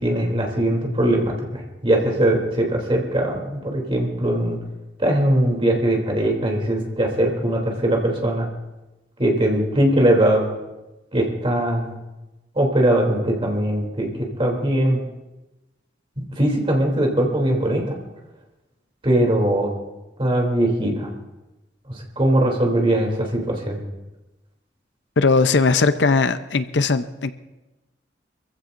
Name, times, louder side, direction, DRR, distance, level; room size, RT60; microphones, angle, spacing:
voice 1, 0.0-4.6 5.0-8.5 9.2-10.4 11.1-11.9 12.5-14.1 14.4-15.0 16.2-17.8 19.0-19.7 20.2-21.1 22.2-23.8, right 1 dB, 30° right, 0 dB, 3.0 m, -20 dB
voice 2, 25.2-27.3, left 4 dB, 75° left, 11 dB, 0.6 m, -19 dB
25.5 x 15.0 x 2.6 m, 1.0 s
head